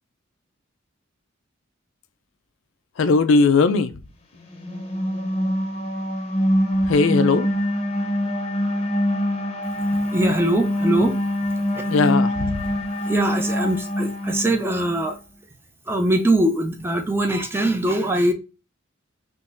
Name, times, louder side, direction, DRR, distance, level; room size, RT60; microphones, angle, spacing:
voice 1, 3.0-3.9 6.9-7.5 11.9-12.5, left 4 dB, 70° left, 0.4 m, -18 dB
sound 1, 4.5-15.1, equal, 30° left, 0.6 m, -24 dB
voice 2, 10.1-11.1 11.7-11.8 13.1-15.2 15.9-18.3, right 1 dB, 10° right, 0.4 m, -22 dB
3.7 x 2.5 x 2.5 m
head